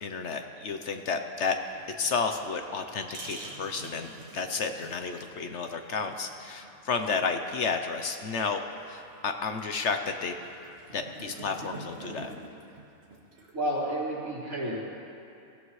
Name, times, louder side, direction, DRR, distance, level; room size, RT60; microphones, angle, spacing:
voice 1, 0.0-1.5 2.0-10.3 10.9-12.3, left 5 dB, 60° left, 6 dB, 1.0 m, -31 dB
sound 1, 1.6-13.8, right 2 dB, 50° right, 1.9 m, -48 dB
voice 2, 13.5-14.9, right 1 dB, 75° right, -9 dB, 4.7 m, -31 dB
23.5 x 15.5 x 3.2 m, 2.6 s
omnidirectional pair, 1.5 m